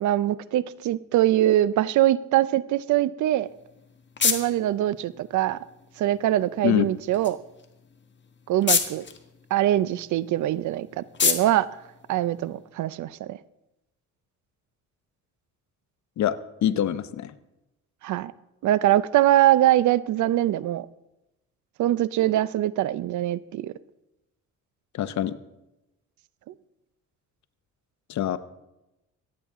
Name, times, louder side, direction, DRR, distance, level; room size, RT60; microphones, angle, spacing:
voice 1, 0.0-3.5 4.2-5.6 6.0-7.4 8.5-9.0 9.5-11.7 12.1-13.4 18.0-18.3 18.6-20.9 21.8-23.7, right 13 dB, 75° right, 18 dB, 0.6 m, -23 dB
sound 1, 3.4-12.8, left 6 dB, 40° left, 1.5 m, -32 dB
voice 2, 16.2-17.3 24.9-25.4 28.1-28.4, left 11 dB, 65° left, 13 dB, 0.8 m, -25 dB
26.5 x 8.9 x 3.6 m, 0.95 s
cardioid pair, 90°, 30 cm